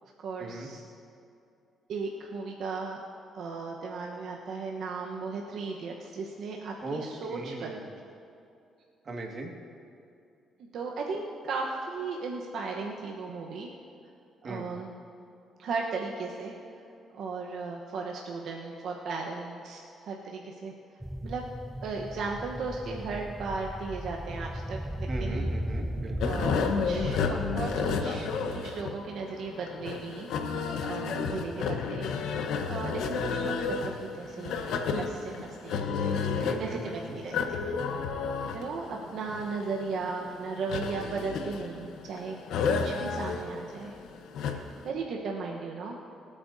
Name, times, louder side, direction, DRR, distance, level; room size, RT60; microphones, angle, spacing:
voice 1, 0.2-0.8 1.9-3.0 3.3-8.0 10.7-13.7 14.4-14.9 15.6-16.6 17.1-20.7 21.2-21.4 21.8-25.5 26.2-28.3 28.6-32.1 32.7-36.3 36.6-37.7 38.5-42.4 42.7-44.0 44.5-44.6 44.8-46.0, right 4 dB, 75° right, 0 dB, 1.1 m, -36 dB
voice 2, 7.3-7.8 9.1-9.5 14.4-14.7 25.1-26.4 36.4-37.2, right 2 dB, 45° right, 1 dB, 1.9 m, -38 dB
sound 1, 21.0-28.0, equal, 5° right, 0.8 m, -36 dB
sound 2, 26.2-44.9, left 5 dB, 85° left, 1.0 m, -31 dB
25.5 x 8.7 x 2.7 m, 2.6 s
cardioid pair, 90°, 0 cm